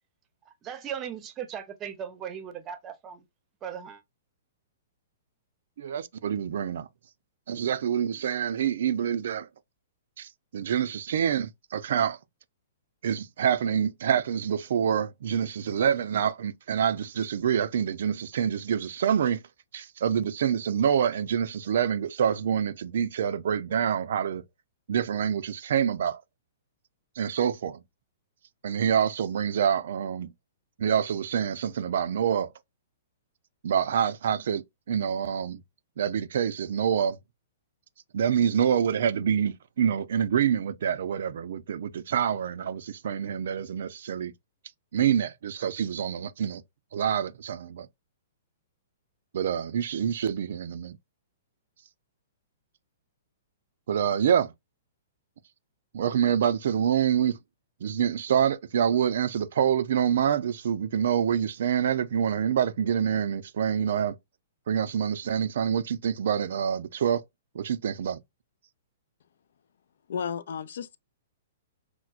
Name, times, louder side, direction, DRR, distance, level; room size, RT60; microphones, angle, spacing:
voice 1, 0.6-3.2 3.6-4.0, right 8 dB, 25° right, 0.6 m, -37 dB
voice 2, 5.8-6.9 7.5-9.5 10.2-12.2 13.0-19.4 19.7-24.4 24.9-26.2 27.2-27.8 28.6-30.3 30.8-32.5 33.6-35.6 36.0-37.2 38.1-44.3 44.9-46.6 46.9-47.9 49.3-51.0 53.9-54.5 55.9-57.4 57.8-64.2 64.7-67.2 67.5-68.2, right 8 dB, 70° right, 0.4 m, -26 dB
voice 3, 70.1-71.0, left 7 dB, 70° left, 0.3 m, -33 dB
4.4 x 2.1 x 2.4 m
hypercardioid pair, 140°, 0 cm